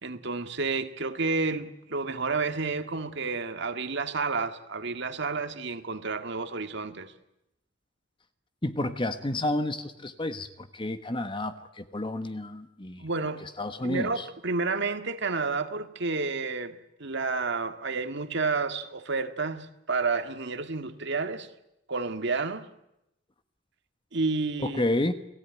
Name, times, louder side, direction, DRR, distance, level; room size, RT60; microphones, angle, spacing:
voice 1, 0.0-7.1 13.0-13.4 13.8-21.5 21.9-22.7 24.1-24.8, right 4 dB, 65° right, 1.9 m, -30 dB
voice 2, 8.6-13.1 13.4-14.2 24.6-25.1, left 1 dB, 25° left, 1.2 m, -30 dB
30.0 x 18.0 x 9.4 m
head